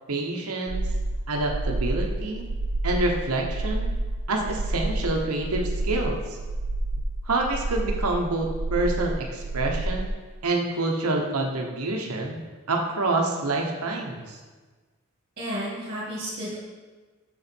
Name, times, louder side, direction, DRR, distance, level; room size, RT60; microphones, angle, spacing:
voice 1, 0.1-0.9 1.3-2.5 2.8-3.9 4.3-6.2 7.2-10.1 10.4-12.4 12.7-14.4, right 2 dB, 90° right, 1 dB, 1.1 m, -27 dB
sound 1, 0.7-10.1, right 2 dB, 65° right, 0.5 m, -29 dB
voice 2, 15.4-16.6, equal, 45° right, -9 dB, 2.0 m, -32 dB
6.9 x 6.4 x 4.4 m, 1.3 s
head